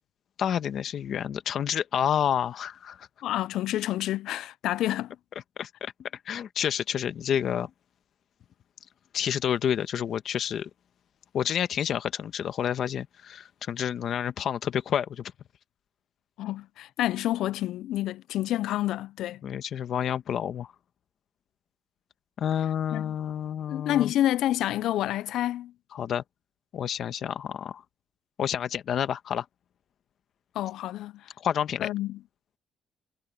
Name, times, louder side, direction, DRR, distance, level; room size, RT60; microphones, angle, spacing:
voice 1, 0.4-3.1 5.6-7.7 9.1-10.7 11.3-15.3 19.4-20.7 22.4-24.1 25.9-26.2 26.7-27.8 28.4-29.4 31.4-31.9, left 9 dB, 65° left, 1.2 m, -29 dB
voice 2, 3.2-5.2 16.4-19.4 22.9-23.1 23.7-25.7 30.6-31.2 31.8-32.2, left 13 dB, 85° left, 0.4 m, -28 dB
cardioid pair, 90°, 0 cm